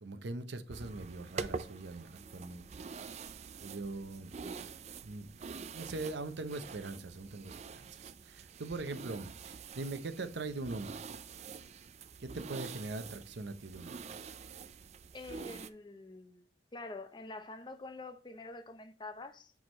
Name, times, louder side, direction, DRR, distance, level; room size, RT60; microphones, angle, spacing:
voice 1, 0.0-2.6 3.6-4.3 5.0-5.3 5.7-11.1 12.2-14.0, right 2 dB, 75° right, 0.7 m, -41 dB
sound 1, 0.7-15.7, right 5 dB, 35° right, 0.4 m, -46 dB
voice 2, 15.1-16.5 16.7-19.5, left 2 dB, 25° left, 0.6 m, -46 dB
6.3 x 4.7 x 4.0 m
head